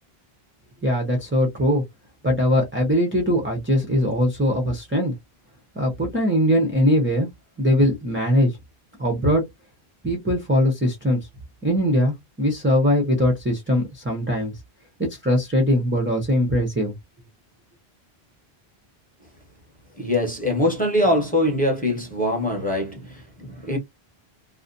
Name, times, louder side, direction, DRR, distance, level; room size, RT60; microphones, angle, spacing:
voice 1, 0.8-1.8 2.2-5.1 5.8-7.3 7.6-8.5 9.0-9.4 10.0-11.2 11.6-14.5 15.0-16.9, equal, 15° right, 0.5 m, -21 dB
voice 2, 20.0-23.8, left 1 dB, 10° left, 0.8 m, -23 dB
2.5 x 2.1 x 2.5 m
omnidirectional pair, 1.0 m